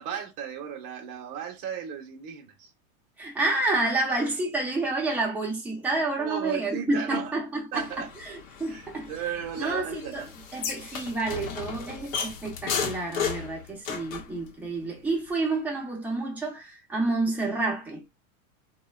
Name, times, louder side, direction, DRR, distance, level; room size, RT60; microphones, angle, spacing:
voice 1, 0.0-2.7 6.2-7.3 7.7-8.1 8.7-10.3, right 8 dB, 40° right, 0.8 m, -35 dB
voice 2, 3.2-9.1 9.6-10.3 10.5-18.0, right 2 dB, 5° right, 0.7 m, -29 dB
sound 1, 7.7-14.3, left 6 dB, 60° left, 0.8 m, -35 dB
3.0 x 2.2 x 2.3 m
supercardioid pair, 135°, 43 cm